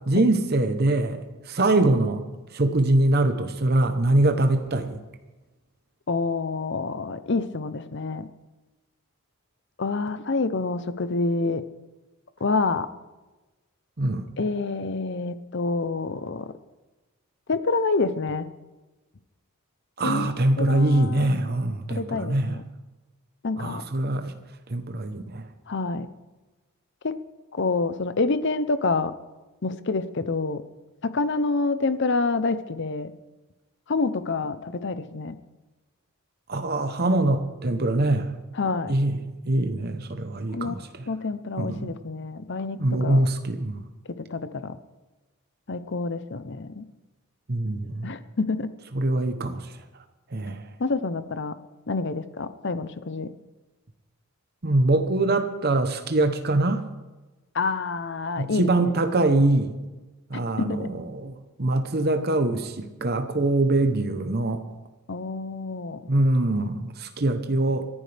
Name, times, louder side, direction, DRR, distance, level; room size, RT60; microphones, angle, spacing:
voice 1, 0.1-2.2 2.5-5.0 14.0-14.3 20.0-22.6 23.6-24.3 24.7-25.5 36.5-38.3 38.9-41.1 41.6-41.9 42.8-43.9 47.5-48.1 48.9-49.7 50.3-50.6 54.6-56.9 58.4-59.8 60.3-64.6 66.1-67.9, right 2 dB, 45° right, 7 dB, 0.9 m, -23 dB
voice 2, 6.1-8.3 9.8-11.6 12.4-12.9 14.4-16.5 17.5-18.5 20.0-20.3 20.6-21.5 21.9-22.6 23.4-23.8 25.7-26.1 27.0-27.2 27.5-29.1 29.6-30.6 31.0-33.1 33.9-35.3 38.5-38.9 40.5-43.3 44.3-44.8 45.7-46.9 48.0-48.7 50.8-51.6 51.9-53.3 57.5-58.7 60.6-60.9 65.1-66.1, left 3 dB, 55° left, 13 dB, 0.7 m, -27 dB
28.0 x 11.0 x 3.4 m, 1.2 s
head